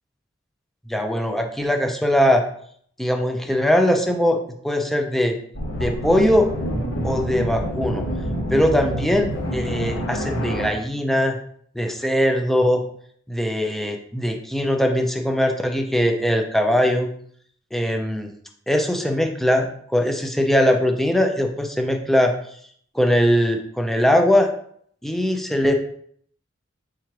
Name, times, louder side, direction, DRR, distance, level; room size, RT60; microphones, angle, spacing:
voice 1, 0.9-2.4 3.0-4.4 4.6-5.3 5.8-6.5 7.0-8.0 8.5-11.4 11.8-12.8 13.3-17.1 17.7-18.3 18.7-22.3 22.9-24.5 25.0-25.7, equal, ahead, 3 dB, 0.5 m, -20 dB
sound 1, 5.5-10.7, equal, 85° left, 1.1 m, -27 dB
3.7 x 3.1 x 4.5 m, 0.63 s
head